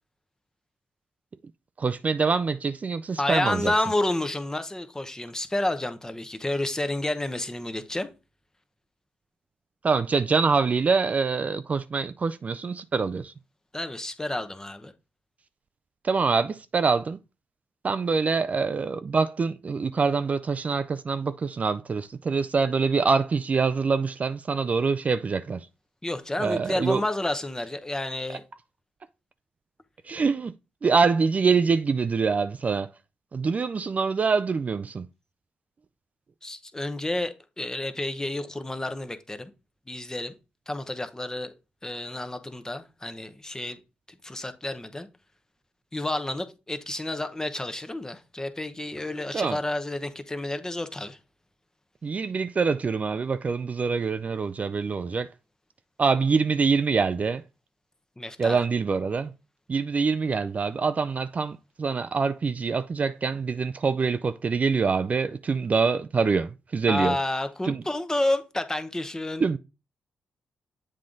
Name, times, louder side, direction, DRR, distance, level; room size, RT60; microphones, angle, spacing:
voice 1, 1.8-3.7 9.8-13.3 16.0-17.2 17.8-25.7 26.4-27.0 30.0-30.5 30.8-32.9 33.3-35.1 49.3-49.6 52.0-55.3 56.0-57.4 58.4-59.3 59.7-67.2 67.6-67.8 69.4-69.6, right 5 dB, 40° right, 0.3 m, -25 dB
voice 2, 3.2-8.1 13.7-14.9 26.0-28.4 36.4-39.5 39.9-40.3 40.7-41.5 41.8-43.8 44.2-45.1 45.9-51.2 58.2-58.6 66.9-69.4, left 1 dB, 15° left, 0.9 m, -30 dB
7.6 x 3.7 x 3.8 m
cardioid pair, 60°, 4 cm